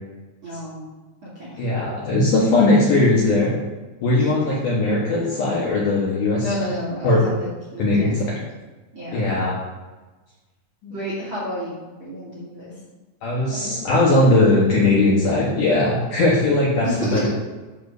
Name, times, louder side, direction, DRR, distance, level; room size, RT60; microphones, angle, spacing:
voice 1, 0.4-0.9 1.2-1.6 4.2-4.3 6.4-8.4 8.9-9.3 10.9-12.7 13.5-13.8 16.8-17.3, equal, 35° right, -4 dB, 2.5 m, -31 dB
voice 2, 1.6-3.6 4.0-6.5 7.0-7.2 7.8-8.3 9.1-9.6 10.8-10.9 13.2-17.3, left 2 dB, 60° left, -5 dB, 2.3 m, -19 dB
10.5 x 4.5 x 6.7 m, 1.2 s
omnidirectional pair, 5.2 m